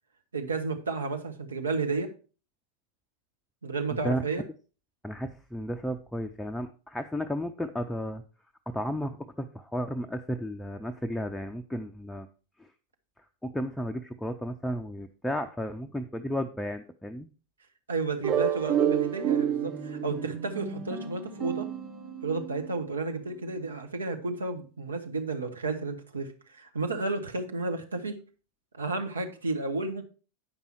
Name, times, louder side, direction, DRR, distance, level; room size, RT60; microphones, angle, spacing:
voice 1, 0.3-2.1 3.6-4.4 17.9-21.7 22.2-28.2 28.8-30.0, right 3 dB, 75° right, 4 dB, 1.2 m, -32 dB
voice 2, 3.9-4.2 5.0-8.2 8.7-12.3 13.4-17.3, equal, 5° left, 5 dB, 0.5 m, -33 dB
sound 1, 18.2-22.8, right 9 dB, 30° right, 3.1 m, -30 dB
8.9 x 5.4 x 4.6 m, 0.36 s
figure-of-eight pair, 90°, 0 cm